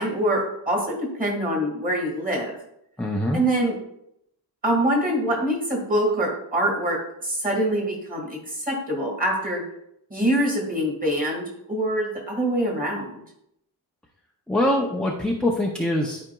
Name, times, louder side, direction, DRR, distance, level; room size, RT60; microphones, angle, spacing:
voice 1, 0.0-2.5 3.3-3.7 4.6-7.0 7.2-9.6 10.1-13.2, right 1 dB, 20° right, 0 dB, 1.8 m, -24 dB
voice 2, 3.0-3.4 14.5-16.2, left 1 dB, ahead, -1 dB, 0.5 m, -23 dB
12.0 x 4.9 x 2.3 m, 0.77 s
wide cardioid pair, 175°, 42 cm